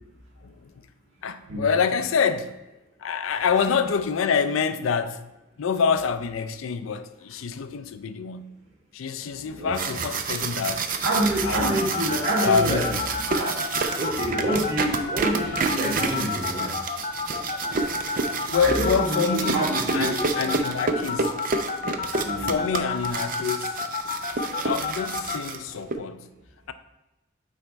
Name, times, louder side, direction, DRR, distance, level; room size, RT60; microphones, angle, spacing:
voice 1, 1.2-2.6 3.0-5.3 5.6-8.6 8.9-10.9 11.4-11.8 12.4-13.0 17.7-17.8 18.4-21.4 22.4-23.8 24.6-26.3, left 6 dB, 85° left, 0.4 m, -26 dB
sound 1, 9.5-25.9, right 4 dB, 45° right, 0.5 m, -29 dB
voice 2, 9.5-10.0 11.0-12.9 13.3-13.6 14.0-16.8 18.6-19.3 19.5-20.5 22.2-22.5, right 1 dB, 70° right, 1.7 m, -27 dB
sound 2, 11.6-25.4, left 5 dB, 35° left, 0.5 m, -30 dB
8.9 x 3.5 x 4.1 m
head